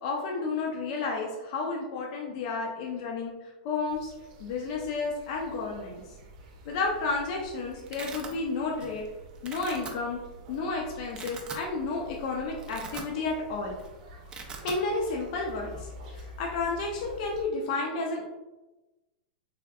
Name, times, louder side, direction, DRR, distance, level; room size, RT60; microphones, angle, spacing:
voice 1, 0.0-4.1 4.4-6.0 6.7-9.1 9.4-10.2 10.5-13.7 14.6-18.4, left 3 dB, 55° left, -1 dB, 0.5 m, -31 dB
sound 1, 3.8-17.4, right 1 dB, 60° right, 0.6 m, -48 dB
Domestic sounds home sounds, 7.1-7.2 7.5-8.3 8.8-9.1 9.3-9.9 10.5-10.6 11.0-11.7 12.1-12.2 12.5-13.4 13.7-13.9 14.1-14.8, right 4 dB, 20° right, 0.4 m, -41 dB
3.4 x 2.5 x 2.3 m, 1.1 s
supercardioid pair, 140°, 5 cm